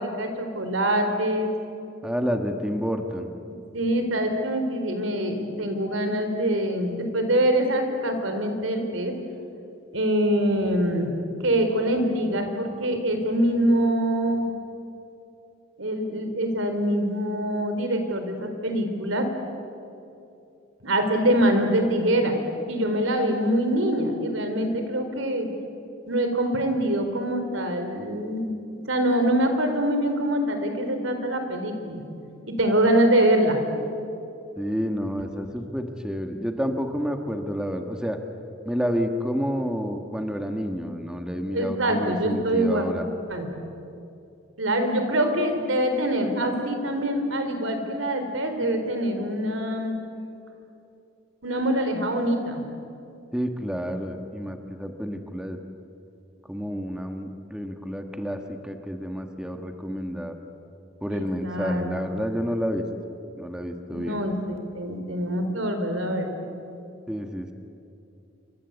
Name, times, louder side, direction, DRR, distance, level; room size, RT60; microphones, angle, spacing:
voice 1, 0.0-1.5 3.7-9.1 9.9-11.1 11.4-14.5 15.8-19.3 20.8-22.3 22.7-25.5 26.1-28.6 28.9-32.0 32.5-33.6 41.5-42.8 43.3-43.5 44.6-49.9 51.4-52.7 61.1-62.2 63.9-66.3, right 1 dB, 75° right, 6 dB, 4.2 m, -24 dB
voice 2, 2.0-3.3 34.6-38.2 38.6-43.0 53.3-55.6 56.4-60.4 61.0-62.8 63.4-64.2 67.1-67.5, equal, 5° right, 5 dB, 1.5 m, -29 dB
28.5 x 25.0 x 8.3 m, 2.6 s
head